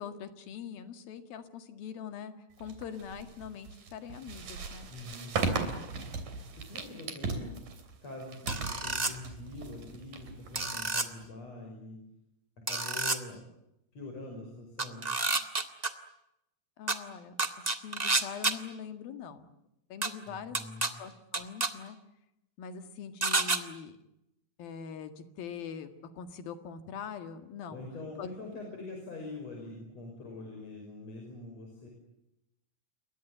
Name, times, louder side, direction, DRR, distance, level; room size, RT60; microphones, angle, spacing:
voice 1, 0.0-2.3 2.6-4.9 16.8-17.4 17.8-19.5 19.9-20.6 21.0-22.0 22.6-24.0 24.6-25.9 26.2-27.8 28.2-28.6, left 7 dB, 85° left, 9 dB, 3.8 m, -43 dB
sound 1, 2.6-11.3, right 4 dB, 65° right, 4.7 m, -38 dB
voice 2, 4.9-5.4 6.2-7.6 8.0-12.0 12.7-13.4 13.9-15.1 20.3-21.0 27.7-31.9, left 2 dB, 45° left, 1 dB, 6.9 m, -44 dB
sound 2, 8.5-9.1 10.6-11.1 12.7-13.2 14.8-15.9 16.9-17.0 17.4-18.5 20.0-20.1 20.5-20.9 21.3-21.7 23.2-23.6, right 3 dB, 25° right, 0.9 m, -29 dB
29.5 x 23.0 x 8.1 m, 0.85 s
omnidirectional pair, 4.1 m